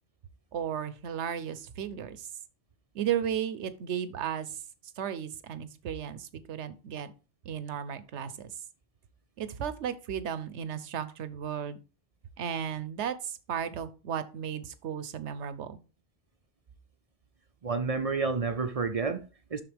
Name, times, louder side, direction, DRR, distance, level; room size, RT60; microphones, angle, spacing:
voice 1, 0.5-2.3 2.9-4.6 5.0-7.1 7.4-8.5 9.4-11.8 12.4-15.8, right 8 dB, 80° right, 1.1 m, -34 dB
voice 2, 17.6-19.6, right 4 dB, 45° right, 0.5 m, -30 dB
12.0 x 4.0 x 3.5 m
omnidirectional pair, 1.2 m